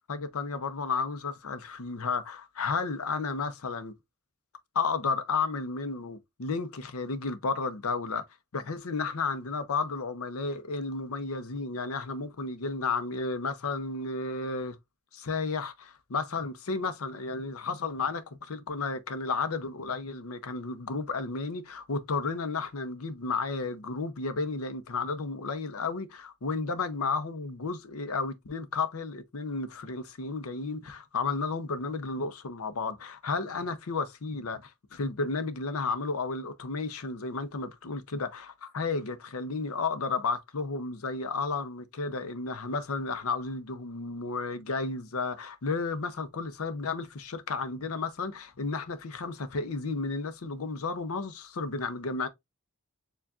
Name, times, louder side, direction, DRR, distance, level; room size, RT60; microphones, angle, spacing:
voice 1, 0.1-3.9 4.7-8.2 8.5-14.8 15.1-52.3, left 4 dB, 85° left, 0.7 m, -32 dB
7.0 x 2.4 x 2.4 m
head